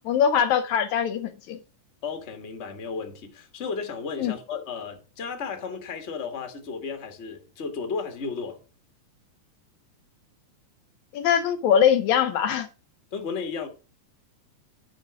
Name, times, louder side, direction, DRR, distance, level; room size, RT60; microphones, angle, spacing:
voice 1, 0.0-1.6 4.2-4.3 11.1-12.7, left 8 dB, 75° left, 1.9 m, -22 dB
voice 2, 2.0-8.6 13.1-13.7, left 5 dB, 35° left, 1.2 m, -34 dB
10.5 x 5.5 x 4.9 m
omnidirectional pair, 3.5 m